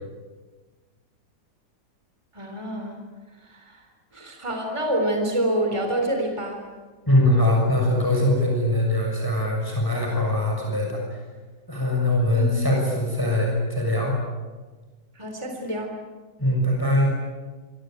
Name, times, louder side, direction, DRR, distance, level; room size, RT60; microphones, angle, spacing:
voice 1, 2.3-3.0 3.4-3.8 4.1-6.6 12.3-12.6 15.2-16.0, right 1 dB, 15° right, 3 dB, 3.9 m, -27 dB
voice 2, 7.1-11.2 11.7-14.2 16.4-17.2, left 1 dB, 10° left, 0 dB, 6.5 m, -22 dB
26.5 x 24.5 x 9.1 m, 1.3 s
omnidirectional pair, 1.9 m